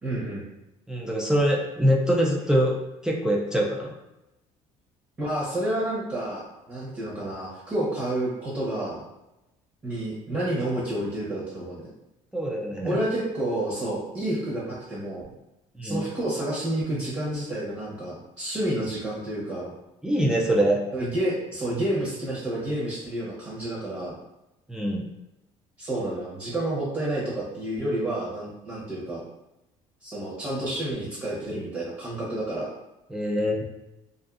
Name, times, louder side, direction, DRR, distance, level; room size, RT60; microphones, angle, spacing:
voice 1, 0.0-0.5 5.2-9.0 9.8-11.9 12.8-15.3 15.8-19.7 20.9-24.2 25.8-29.2 30.0-32.8, right 1 dB, 25° right, -7 dB, 0.8 m, -30 dB
voice 2, 0.9-2.7 3.0-3.9 12.3-13.0 15.8-16.0 20.0-20.8 24.7-25.0 33.1-33.6, equal, 5° right, -1 dB, 0.3 m, -23 dB
2.5 x 2.4 x 2.4 m, 0.93 s
cardioid pair, 110°, 13 cm